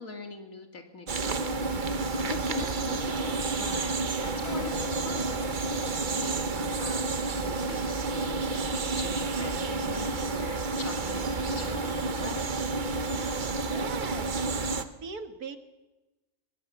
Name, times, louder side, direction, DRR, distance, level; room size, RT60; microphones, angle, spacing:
voice 1, 0.0-3.9 4.2-12.4, left 3 dB, 65° left, 4 dB, 2.9 m, -43 dB
sound 1, 1.1-14.8, right 3 dB, 40° right, 1.0 m, -30 dB
Keyboard (musical), 4.4-8.5, left 10 dB, 85° left, 1.8 m, -48 dB
voice 2, 13.5-14.5 15.0-15.6, right 5 dB, 90° right, 8 dB, 2.0 m, -39 dB
23.0 x 20.0 x 7.3 m, 1.1 s
omnidirectional pair, 1.6 m